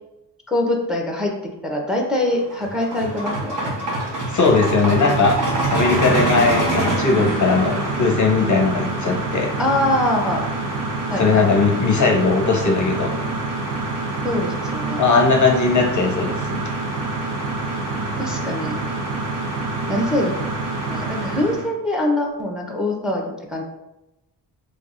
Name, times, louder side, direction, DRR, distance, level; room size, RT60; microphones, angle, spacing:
voice 1, 0.5-1.3 1.6-3.8 9.6-10.5 11.1-11.4 14.2-15.0 18.1-18.8 19.9-20.3 20.9-23.6, left 1 dB, ahead, 1 dB, 0.7 m, -23 dB
sound 1, 2.3-21.7, right 2 dB, 50° right, 1.0 m, -25 dB
voice 2, 4.3-5.4 5.7-9.5 11.2-13.1 15.0-16.8, left 4 dB, 45° left, 2 dB, 0.6 m, -19 dB
5.7 x 3.0 x 2.4 m, 0.93 s
wide cardioid pair, 120°, 41 cm